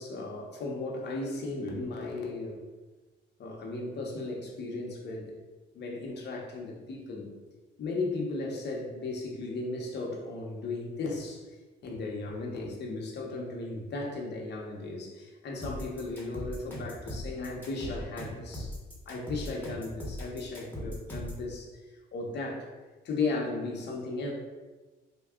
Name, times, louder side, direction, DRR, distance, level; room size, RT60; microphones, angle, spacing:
voice 1, 0.0-2.6 3.4-5.3 5.7-7.3 7.8-11.4 11.8-18.7 19.1-21.7 22.1-22.7 23.0-24.3, left 3 dB, 60° left, -1 dB, 0.8 m, -35 dB
sound 1, 15.6-21.4, left 1 dB, 10° left, 1.1 m, -39 dB
3.6 x 2.2 x 3.6 m, 1.2 s
cardioid pair, 90°, 20 cm